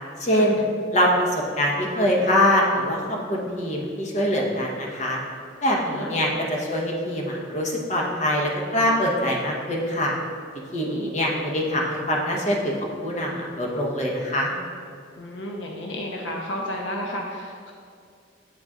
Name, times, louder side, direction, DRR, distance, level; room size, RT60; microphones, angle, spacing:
voice 1, 0.2-0.6 0.9-5.2 5.6-10.1 10.7-12.8 13.0-14.5, equal, 35° left, -2 dB, 1.0 m, -23 dB
voice 2, 5.9-6.3 10.9-11.1 15.2-17.7, left 1 dB, 70° left, 0 dB, 0.6 m, -32 dB
8.3 x 4.0 x 3.6 m, 2.3 s
head